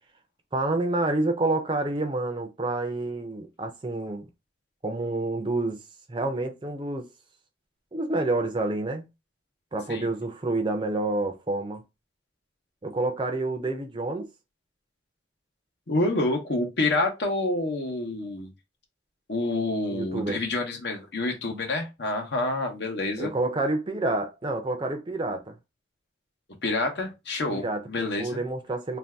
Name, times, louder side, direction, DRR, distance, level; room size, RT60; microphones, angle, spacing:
voice 1, 0.5-4.3 4.8-5.8 6.1-7.1 7.9-9.1 9.7-11.8 12.8-14.3 19.9-20.4 23.2-25.6 27.5-27.8 28.2-29.0, right 2 dB, 25° right, 0.4 m, -28 dB
voice 2, 15.9-18.5 19.3-23.3 26.6-28.4, left 2 dB, 65° left, 0.8 m, -28 dB
2.6 x 2.2 x 3.4 m
head